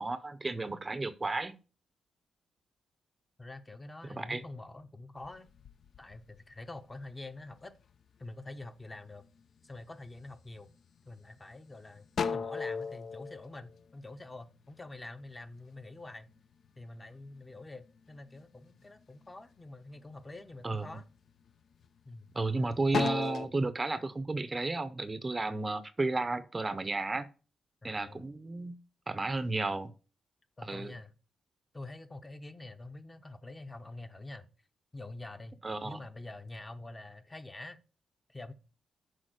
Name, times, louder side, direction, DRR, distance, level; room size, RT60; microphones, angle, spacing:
voice 1, 0.0-1.5 4.1-4.4 20.6-21.0 22.3-27.3 27.8-28.8 29.1-29.9 30.6-31.0 35.6-36.0, right 3 dB, 25° right, 0.6 m, -33 dB
voice 2, 3.4-5.5 6.0-7.7 8.2-9.3 9.6-10.7 11.1-16.3 16.8-21.0 22.0-22.3 27.8-28.2 30.6-31.1 31.7-34.5 34.9-37.8 38.3-38.5, left 2 dB, 20° left, 0.8 m, -46 dB
sound 1, 5.2-7.1 7.6-8.3 8.8-9.4 9.8-10.7 11.2-11.3 11.6-14.5 14.9-17.2 17.5-18.6 19.0-19.6 20.1-20.3 20.8-22.5 22.8-23.5, left 6 dB, 65° left, 0.5 m, -37 dB
6.4 x 4.4 x 6.2 m
cardioid pair, 90°, 0 cm